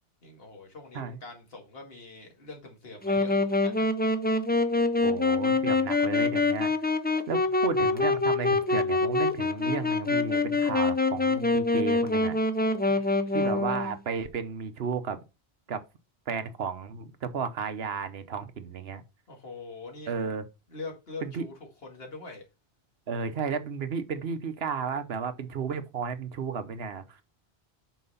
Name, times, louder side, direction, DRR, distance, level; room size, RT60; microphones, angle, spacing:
voice 1, 0.2-3.9 7.4-7.5 12.9-13.4 19.3-20.1 20.7-21.5 21.8-22.5, left 3 dB, 65° left, 2.2 m, -44 dB
Wind instrument woodwind instrument, 3.0-14.0, left 3 dB, 15° left, 0.4 m, -25 dB
voice 2, 5.0-6.7 7.3-12.4 13.3-15.2 15.7-15.8 16.3-19.0 20.1-20.4 21.2-21.4 23.1-27.2, right 6 dB, 70° right, 1.1 m, -33 dB
6.1 x 5.4 x 5.5 m
omnidirectional pair, 1.1 m